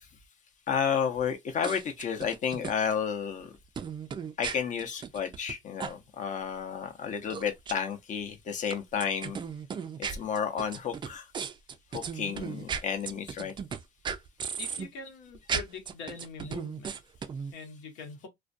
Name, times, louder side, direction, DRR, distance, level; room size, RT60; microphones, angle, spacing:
voice 1, 0.7-3.5 4.4-9.4 10.0-11.3 11.9-13.5, left 7 dB, 45° left, 0.7 m, -31 dB
sound 1, 1.6-2.7 3.8-5.5 5.8-5.9 7.3-7.7 8.7-13.8 14.0-14.9 15.3-17.5, right 6 dB, 30° right, 0.3 m, -35 dB
voice 2, 14.6-17.0 17.5-18.3, left 5 dB, 85° left, 1.0 m, -43 dB
2.4 x 2.2 x 2.5 m
cardioid pair, 110°, 17 cm